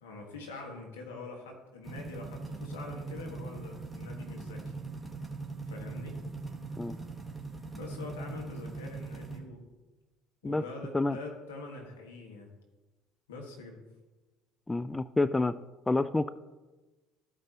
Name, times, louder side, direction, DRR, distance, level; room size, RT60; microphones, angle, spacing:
voice 1, 0.0-4.7 5.7-6.2 7.7-9.6 10.4-12.5 13.3-13.8, left 3 dB, 85° left, 1 dB, 1.6 m, -44 dB
sound 1, 1.8-9.4, right 3 dB, ahead, 1.7 m, -41 dB
voice 2, 14.7-15.6 15.9-16.3, left 2 dB, 15° left, 16 dB, 0.3 m, -28 dB
13.5 x 5.2 x 2.9 m, 1.2 s
hypercardioid pair, 65°, 0 cm